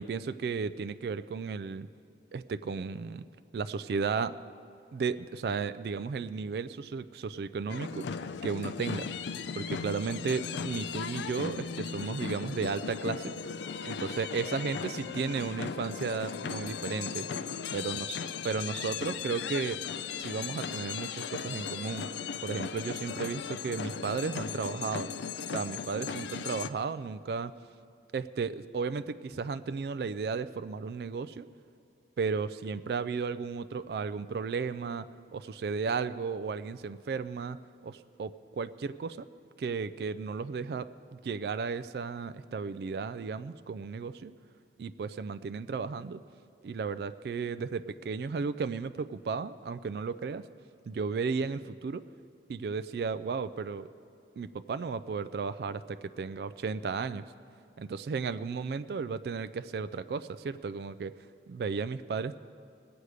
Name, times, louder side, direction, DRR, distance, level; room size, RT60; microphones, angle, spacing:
voice 1, 0.0-1.9 2.3-3.3 3.5-4.4 4.9-8.0 8.4-9.1 9.5-13.3 13.8-17.3 17.7-18.2 18.4-19.8 20.2-22.1 22.4-25.1 25.5-27.5 28.1-31.5 32.2-35.1 35.3-37.6 37.8-39.3 39.6-44.3 44.8-46.2 46.6-50.4 50.9-52.0 52.5-53.9 54.4-57.2 57.8-61.1 61.5-62.3, right 5 dB, 60° right, 13 dB, 0.3 m, -34 dB
sound 1, 7.7-26.7, left 6 dB, 75° left, 0.4 m, -37 dB
20.0 x 8.0 x 4.9 m, 2.4 s
head